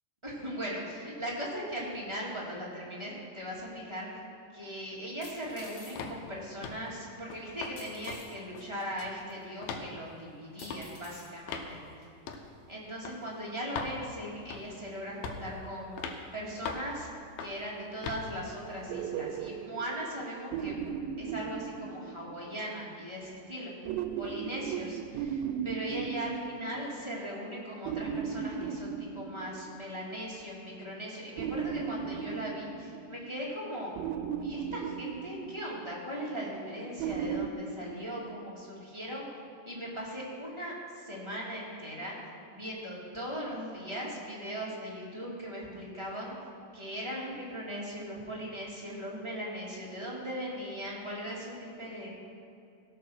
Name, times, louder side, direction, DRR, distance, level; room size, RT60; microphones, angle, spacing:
voice 1, 0.2-4.1 4.5-11.8 12.7-17.1 17.4-20.8 21.2-23.7 24.2-33.9 34.4-39.3 39.6-42.2 42.5-46.3 46.7-52.1, equal, 15° right, -5 dB, 1.0 m, -39 dB
sound 1, 3.9-4.0 5.2-6.0 7.8-8.3 9.3-9.4 10.6-11.3 12.0-12.1, left 2 dB, 45° left, 1.9 m, -50 dB
sound 2, 6.0-6.2 6.6-6.9 7.3-7.8 8.1-8.2 8.6-9.2 9.6-9.9 10.6-10.8 11.5-11.7 12.3-12.5 13.1-13.2 13.8-14.0 14.5-14.8 15.2-15.5 16.0-16.2 16.7-16.9 17.4-17.6 18.0-18.3, left 5 dB, 90° left, 2.7 m, -39 dB
sound 3, 18.9-22.6 23.9-27.2 27.9-30.0 31.4-33.5 34.0-36.0 37.0-37.5, right 7 dB, 85° right, 2.3 m, -36 dB
16.5 x 5.8 x 6.2 m, 2.6 s
omnidirectional pair, 4.1 m